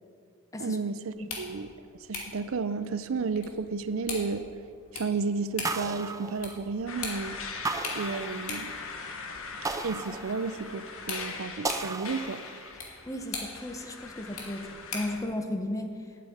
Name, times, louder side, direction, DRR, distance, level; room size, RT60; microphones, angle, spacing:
voice 1, 0.6-1.7 2.1-4.5 4.9-7.4 7.9-8.7 9.8-12.4, right 4 dB, 65° right, 12 dB, 0.5 m, -32 dB
sound 1, 1.1-15.2, left 4 dB, 80° left, 2.4 m, -43 dB
sound 2, 5.6-7.0 7.6-8.8 9.6-10.9 11.6-12.8, right 3 dB, 15° right, 0.4 m, -35 dB
sound 3, 6.9-15.2, left 4 dB, 65° left, 1.2 m, -41 dB
voice 2, 13.1-14.7 14.9-15.9, left 1 dB, 15° left, 5 dB, 0.9 m, -34 dB
8.5 x 8.2 x 9.2 m, 2.2 s
head